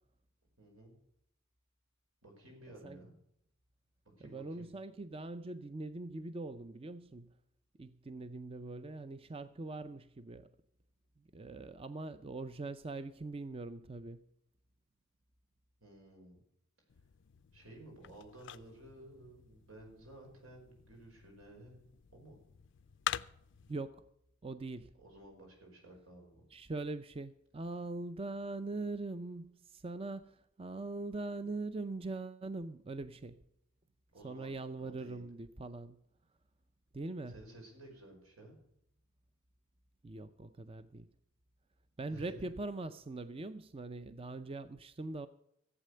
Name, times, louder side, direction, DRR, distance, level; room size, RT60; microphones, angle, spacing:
voice 1, 0.6-1.0 2.2-3.1 4.2-4.7 15.8-16.4 17.5-21.8 22.1-22.4 25.0-26.4 34.1-35.2 37.3-38.6 42.1-42.5, right 1 dB, 85° right, 5.5 m, -54 dB
voice 2, 4.2-7.4 7.8-10.5 11.2-14.2 23.7-24.0 24.4-25.0 26.5-33.4 34.2-36.0 36.9-37.4 40.0-41.1 42.0-45.3, right 2 dB, 25° right, 0.5 m, -42 dB
sound 1, 16.9-23.7, left 10 dB, 60° left, 0.4 m, -46 dB
15.0 x 8.3 x 6.7 m
head